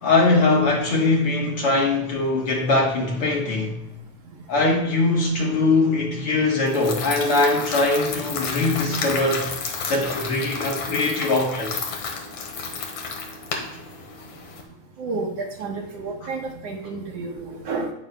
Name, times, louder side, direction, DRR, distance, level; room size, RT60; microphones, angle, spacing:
voice 1, 0.0-3.8 4.5-9.5 9.9-11.7, left 2 dB, 55° left, -1 dB, 2.0 m, -21 dB
sound 1, 6.7-14.6, left 5 dB, 70° left, 2.7 m, -31 dB
voice 2, 15.0-17.9, right 3 dB, 60° right, -1 dB, 2.1 m, -30 dB
18.5 x 6.4 x 2.3 m, 0.92 s
omnidirectional pair, 3.4 m